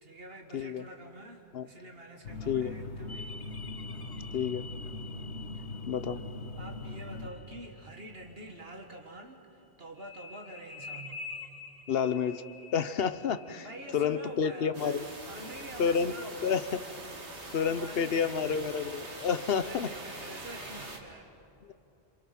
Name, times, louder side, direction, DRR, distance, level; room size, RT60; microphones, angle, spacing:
voice 1, 0.0-3.3 5.5-5.7 6.6-11.2 13.6-16.7 17.3-18.7 19.1-21.3, right 1 dB, 65° right, 3 dB, 2.0 m, -47 dB
voice 2, 0.5-0.8 1.5-1.7 2.5-2.7 4.3-4.7 5.9-6.2 11.9-12.4 12.7-13.7 13.9-15.0 15.8-16.1 16.4-16.6 17.5-19.9 21.7-21.8, left 7 dB, 65° left, 13 dB, 0.9 m, -29 dB
sound 1, 2.2-7.3, left 2 dB, 85° left, 1.8 m, -41 dB
sound 2, 3.1-8.6 10.0-14.7, left 4 dB, 25° left, 0.7 m, -48 dB
sound 3, 14.7-21.0, right 2 dB, 90° right, 2.6 m, -44 dB
27.5 x 26.5 x 5.9 m, 2.9 s
omnidirectional pair, 1.1 m